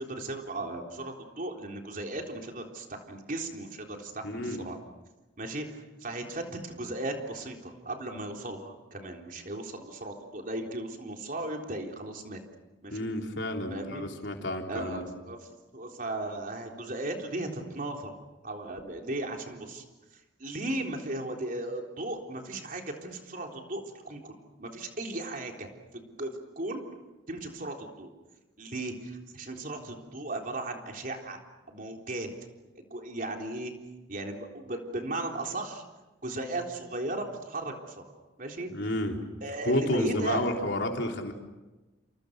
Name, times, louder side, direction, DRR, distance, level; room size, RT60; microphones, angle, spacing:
voice 1, 0.0-4.8 5.4-12.4 12.8-13.1 13.7-14.0 14.7-18.1 18.4-19.8 20.4-24.3 24.6-26.8 27.3-28.1 28.6-31.4 31.7-32.3 32.8-33.7 34.1-35.8 36.2-38.0 38.4-38.7 39.4-40.5, right 2 dB, 45° right, 2 dB, 3.7 m, -36 dB
voice 2, 4.2-4.7 12.9-15.1 38.7-39.2 39.7-41.3, left 1 dB, 65° left, 2 dB, 3.8 m, -30 dB
29.0 x 28.0 x 6.7 m, 1.1 s
head